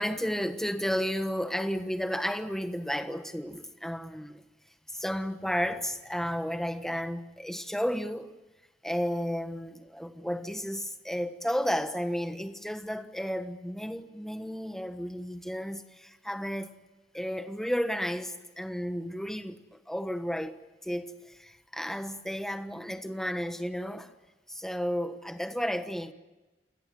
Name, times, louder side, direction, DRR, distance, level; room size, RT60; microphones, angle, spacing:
voice 1, 0.0-4.4 4.9-8.3 8.8-16.7 17.1-20.6 20.8-24.1 24.5-26.1, equal, ahead, 1.3 m, -33 dB
29.0 x 17.5 x 9.3 m
head